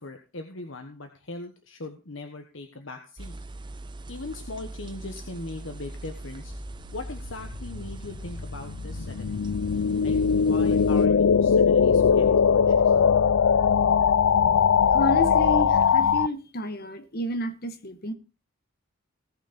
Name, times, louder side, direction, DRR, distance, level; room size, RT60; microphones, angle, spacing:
voice 1, 0.0-3.3 4.1-6.5 6.9-9.3 10.0-12.9, left 2 dB, 70° left, 1.4 m, -39 dB
sound 1, 3.2-11.1, right 2 dB, 25° right, 0.7 m, -41 dB
sound 2, 6.9-16.3, left 6 dB, 90° left, 0.4 m, -21 dB
voice 2, 14.9-18.1, equal, 50° left, 1.2 m, -31 dB
18.5 x 6.2 x 4.2 m
head